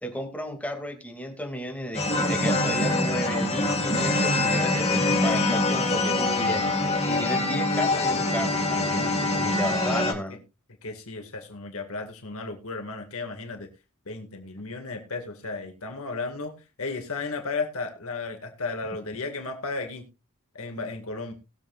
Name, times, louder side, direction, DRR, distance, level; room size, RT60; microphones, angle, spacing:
voice 1, 0.0-6.6 7.1-10.4, equal, 5° left, 2 dB, 2.4 m, -33 dB
sound 1, 1.9-10.1, left 2 dB, 30° left, 2.5 m, -24 dB
voice 2, 9.7-10.4 10.8-13.7 14.1-16.5 16.8-20.1 20.5-21.3, left 3 dB, 65° left, 4 dB, 2.1 m, -34 dB
20.5 x 7.5 x 2.5 m, 0.28 s
head